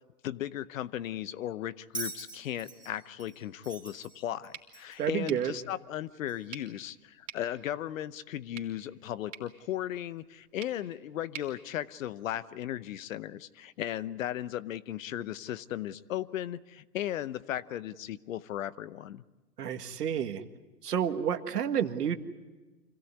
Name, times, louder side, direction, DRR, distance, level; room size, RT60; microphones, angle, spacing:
voice 1, 0.2-19.2, left 12 dB, 55° left, 17 dB, 0.8 m, -36 dB
Bell, 1.9-5.1 6.3-6.4, right 3 dB, ahead, 3.1 m, -43 dB
sound 1, 4.5-12.6, right 9 dB, 45° right, 3.4 m, -51 dB
voice 2, 5.0-5.5 19.6-20.4 20.8-22.2, right 9 dB, 70° right, 9 dB, 1.7 m, -30 dB
25.5 x 16.5 x 9.5 m, 1.2 s
hypercardioid pair, 130°, 49 cm